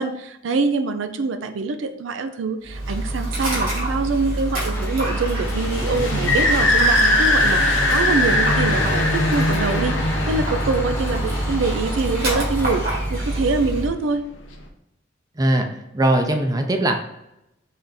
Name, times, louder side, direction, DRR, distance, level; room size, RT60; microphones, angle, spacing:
voice 1, 0.0-14.2, right 3 dB, 85° right, 7 dB, 0.4 m, -25 dB
Dog, 2.6-13.9, right 1 dB, 55° right, 1.7 m, -26 dB
Domestic sounds home sounds, 4.7-13.4, left 1 dB, 10° left, 0.9 m, -36 dB
sound 1, 5.4-12.8, left 1 dB, 80° left, 0.8 m, -21 dB
voice 2, 15.4-15.7 15.9-17.2, right 1 dB, 20° right, 4 dB, 0.5 m, -20 dB
3.7 x 3.4 x 4.0 m, 0.85 s
head